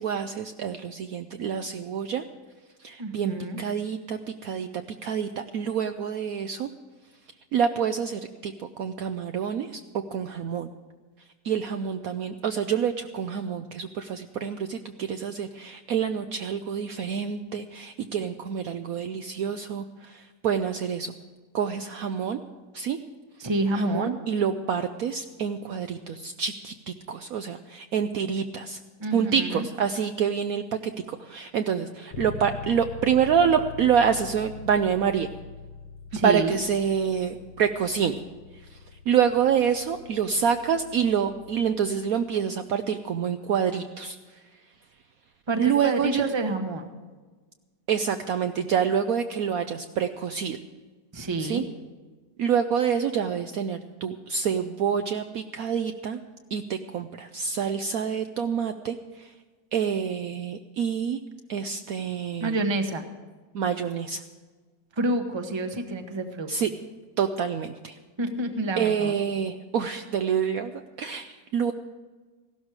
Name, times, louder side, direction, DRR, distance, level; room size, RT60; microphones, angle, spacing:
voice 1, 0.0-2.2 2.8-4.7 5.0-6.7 7.5-8.5 8.8-9.8 10.1-10.7 11.4-21.1 21.5-22.4 22.7-23.0 23.7-28.8 29.1-35.3 36.2-38.1 39.1-44.2 45.6-46.2 47.9-50.6 51.4-51.6 52.4-56.2 56.5-59.0 59.7-61.2 61.5-62.6 63.5-64.2 66.5-66.7 67.2-68.0 68.8-70.7 71.0-71.7, right 7 dB, 65° right, 7 dB, 1.0 m, -27 dB
voice 2, 3.0-3.6 23.4-24.2 29.0-29.7 36.1-36.6 45.5-46.9 51.1-51.6 62.4-63.0 65.0-66.5 68.2-69.1, right 2 dB, 20° right, 6 dB, 1.0 m, -28 dB
Bass guitar, 32.1-41.9, left 5 dB, 70° left, 1.5 m, -43 dB
16.0 x 12.5 x 4.8 m, 1.4 s
omnidirectional pair, 1.9 m